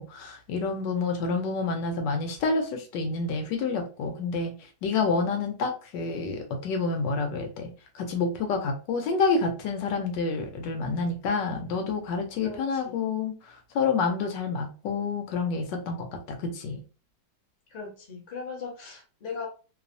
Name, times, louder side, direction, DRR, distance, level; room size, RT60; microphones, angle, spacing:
voice 1, 0.0-7.7 7.9-16.8, left 4 dB, 75° left, 4 dB, 1.2 m, -28 dB
voice 2, 12.4-12.9 17.7-19.5, left 5 dB, 45° left, -2 dB, 0.5 m, -38 dB
3.0 x 2.0 x 2.5 m, 0.34 s
omnidirectional pair, 2.0 m